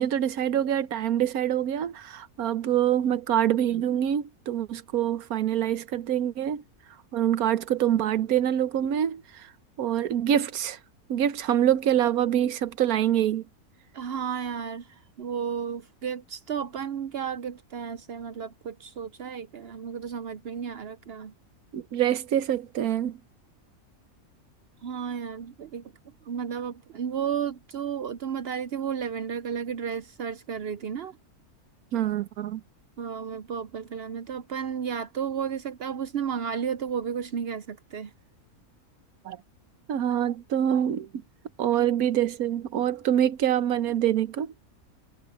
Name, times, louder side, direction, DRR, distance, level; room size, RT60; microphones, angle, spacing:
voice 1, 0.0-6.6 7.1-9.2 9.8-10.8 11.1-13.4 21.7-23.2 31.9-32.6 39.3-39.4 39.9-41.1 41.6-44.5, right 10 dB, 80° right, 1.3 m, -25 dB
voice 2, 13.9-21.3 24.8-25.9 26.2-31.2 33.0-38.1, right 7 dB, 60° right, 0.7 m, -33 dB
omnidirectional pair, 1.5 m